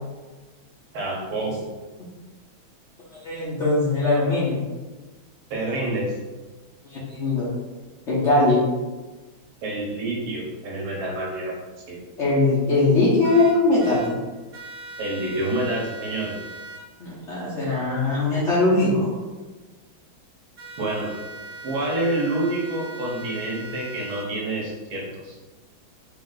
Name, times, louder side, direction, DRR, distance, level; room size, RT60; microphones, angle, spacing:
voice 1, 0.9-1.7 5.5-6.2 9.6-11.5 11.9-12.0 15.0-16.3 20.8-21.1 21.6-25.4, right 2 dB, 90° right, -3 dB, 2.0 m, -27 dB
voice 2, 3.1-4.6 6.9-7.5 8.1-8.7 12.2-14.1 17.0-19.1, left 2 dB, 55° left, -7 dB, 0.8 m, -21 dB
sound 1, 13.2-14.1 14.5-16.8 20.6-24.3, right 2 dB, 35° right, 1.2 m, -40 dB
4.6 x 2.5 x 3.9 m, 1.2 s
omnidirectional pair, 2.2 m